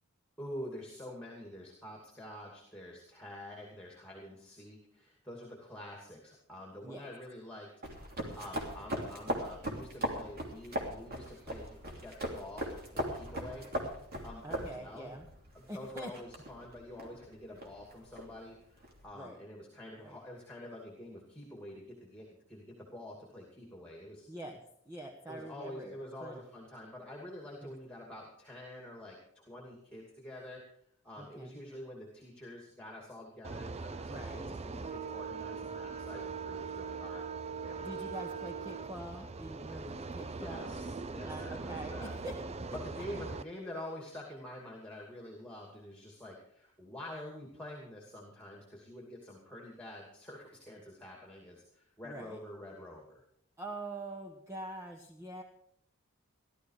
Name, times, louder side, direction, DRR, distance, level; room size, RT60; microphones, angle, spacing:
voice 1, 0.4-7.7 7.9-13.7 14.2-15.2 15.5-24.3 25.3-30.6 31.0-37.3 37.6-38.2 40.3-42.1 42.8-53.2, left 1 dB, 5° left, -1 dB, 2.5 m, -47 dB
sound 1, 7.8-19.0, right 1 dB, 45° right, 3.0 m, -40 dB
voice 2, 13.3-13.7 14.4-15.3 15.7-16.1 19.1-19.4 20.0-20.2 24.3-24.6 24.8-26.4 27.6-27.7 31.2-31.6 34.0-34.5 37.8-40.8 41.2-42.3 42.7-43.0 52.0-52.4 53.6-55.4, right 1 dB, 15° right, 2 dB, 1.2 m, -45 dB
sound 2, 33.4-43.4, right 4 dB, 30° right, 0.5 m, -41 dB
16.5 x 12.5 x 4.9 m, 0.69 s
head